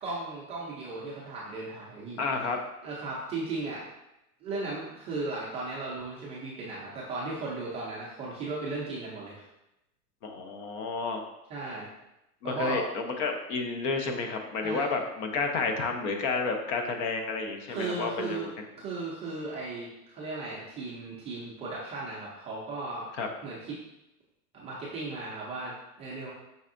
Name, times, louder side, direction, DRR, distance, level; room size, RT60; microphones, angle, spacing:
voice 1, 0.0-2.2 2.8-3.8 4.4-9.5 11.5-11.9 12.4-12.8 14.6-14.9 17.7-18.5 18.8-23.8 24.5-26.3, right 3 dB, 15° right, -6 dB, 0.4 m, -36 dB
voice 2, 2.2-2.6 10.2-11.2 12.4-18.4 23.2-23.3, left 4 dB, 55° left, 4 dB, 0.7 m, -31 dB
5.5 x 3.4 x 2.5 m, 0.90 s
supercardioid pair, 140°, 45 cm